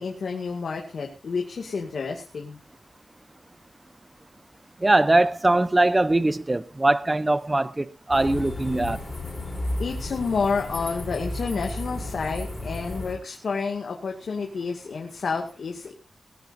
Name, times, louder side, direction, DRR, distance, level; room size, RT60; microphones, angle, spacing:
voice 1, 0.0-2.6 9.8-15.9, left 5 dB, 70° left, 2.1 m, -29 dB
voice 2, 4.8-9.0, right 2 dB, 20° right, 0.6 m, -21 dB
sound 1, 8.1-13.1, left 1 dB, 20° left, 5.1 m, -33 dB
21.0 x 15.0 x 2.6 m
wide cardioid pair, 165°, 0 cm